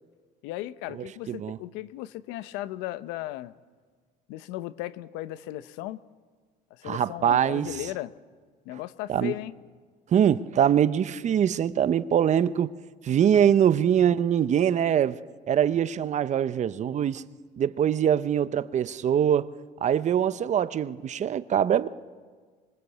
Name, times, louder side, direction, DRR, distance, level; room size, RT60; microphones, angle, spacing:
voice 1, 0.4-3.5 4.3-6.0 6.7-8.1 8.6-9.5, left 15 dB, 85° left, 0.8 m, -36 dB
voice 2, 1.3-1.6 6.8-7.7 9.1-9.3 10.1-12.7 13.0-15.2 15.5-17.2 17.6-19.5 19.8-21.9, right 9 dB, 40° right, 0.8 m, -23 dB
26.0 x 22.5 x 8.1 m
cardioid pair, 105°, 18 cm